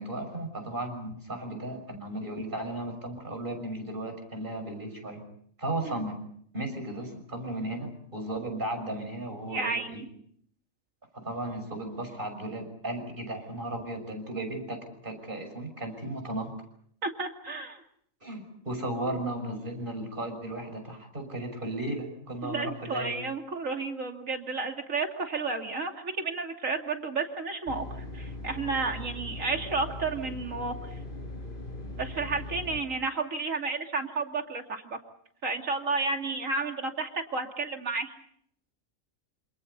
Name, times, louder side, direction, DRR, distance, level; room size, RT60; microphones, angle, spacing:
voice 1, 0.0-5.2 5.6-6.2 6.5-10.0 11.1-16.5 18.2-23.2, right 1 dB, 40° right, 5 dB, 6.5 m, -35 dB
voice 2, 9.5-10.0 17.0-17.8 22.4-27.8 28.1-30.7 32.0-35.0 35.4-38.1, right 4 dB, 75° right, 4 dB, 3.1 m, -32 dB
sound 1, 27.7-32.8, left 2 dB, 40° left, 4.7 m, -40 dB
27.5 x 27.5 x 5.4 m, 0.65 s
omnidirectional pair, 1.4 m